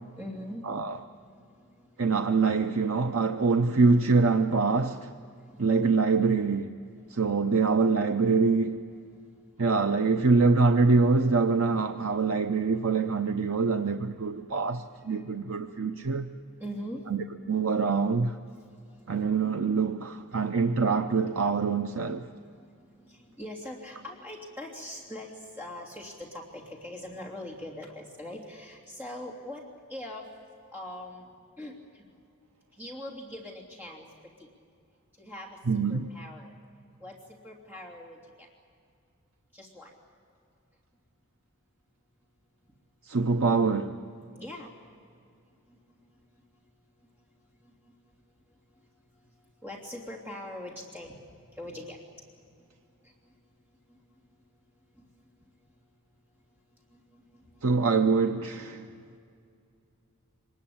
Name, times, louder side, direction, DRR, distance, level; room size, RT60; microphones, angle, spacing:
voice 1, 0.1-2.1 5.3-5.6 15.1-15.2 16.6-17.1 18.9-19.2 20.4-20.5 22.3-30.3 30.7-31.3 31.6-32.1 32.7-34.1 34.4-34.5 35.2-35.6 35.9-36.5 37.0-38.5 39.5-39.9 44.3-44.7 45.7-46.0 46.4-46.5 47.6-47.9 49.6-51.1 51.5-52.0 52.6-52.7 53.0-53.3 53.9-54.2 54.9-55.1 56.9-57.6 59.1-59.2, left 1 dB, 10° right, 3.0 m, -43 dB
voice 2, 0.6-1.0 2.0-5.1 5.6-6.8 7.1-8.8 9.6-16.3 17.1-18.4 19.1-22.3 35.7-36.1 43.1-44.0 57.6-58.8, right 4 dB, 70° right, 0.8 m, -25 dB
25.5 x 20.5 x 8.6 m
head